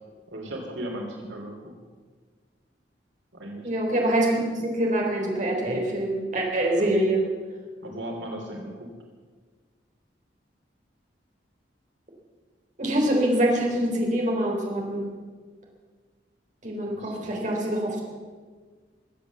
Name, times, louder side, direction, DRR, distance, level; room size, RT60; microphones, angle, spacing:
voice 1, 0.3-1.7 3.3-3.7 6.8-6.9 7.8-8.9 16.8-17.4, right 1 dB, 85° right, 1 dB, 2.9 m, -37 dB
voice 2, 3.6-7.2 12.8-15.1 16.6-18.0, right 1 dB, 45° right, -1 dB, 3.6 m, -25 dB
22.0 x 8.3 x 7.2 m, 1.5 s
head